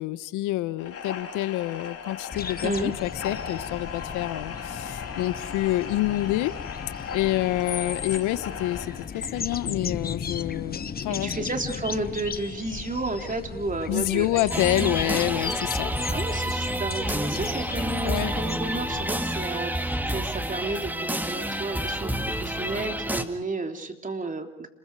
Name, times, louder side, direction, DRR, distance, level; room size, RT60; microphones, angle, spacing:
voice 1, 0.0-6.5 7.1-11.3 13.9-15.9 18.0-18.3, left 16 dB, 75° left, 15 dB, 1.1 m, -27 dB
sound 1, 0.8-9.7, left 6 dB, 50° left, 4.2 m, -38 dB
sound 2, 2.3-19.5, left 6 dB, 30° left, 1.0 m, -36 dB
voice 2, 11.1-14.9 15.5-15.6 16.1-24.7, right 2 dB, 25° right, 5 dB, 3.3 m, -32 dB
sound 3, 14.5-23.2, right 1 dB, 5° right, 1.9 m, -29 dB
30.0 x 21.5 x 4.8 m, 0.81 s
supercardioid pair, 70°, 31 cm